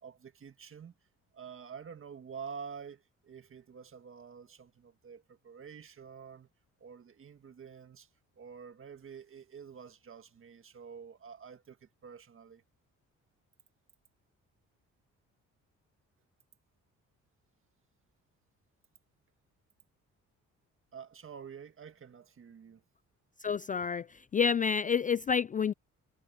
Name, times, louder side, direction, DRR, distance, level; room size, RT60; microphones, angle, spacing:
voice 1, 0.0-0.9 1.3-6.5 6.8-8.1 8.4-12.6 20.9-22.8, right 6 dB, 45° right, 1.9 m, -48 dB
voice 2, 23.4-25.7, left 6 dB, 25° left, 0.4 m, -29 dB
cardioid pair, 90°, 30 cm